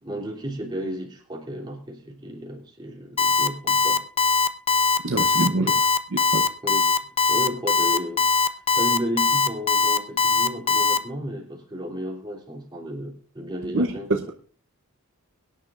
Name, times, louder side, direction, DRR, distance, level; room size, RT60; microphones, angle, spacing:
voice 1, 0.0-4.0 5.5-5.8 6.6-6.9 7.2-14.3, equal, 20° right, -2 dB, 2.9 m, -33 dB
Alarm, 3.2-11.0, left 4 dB, 25° left, 0.5 m, -20 dB
voice 2, 5.0-5.7 6.1-6.4 13.7-13.9, right 2 dB, 60° right, 3 dB, 0.8 m, -24 dB
23.0 x 10.0 x 2.5 m, 0.43 s
head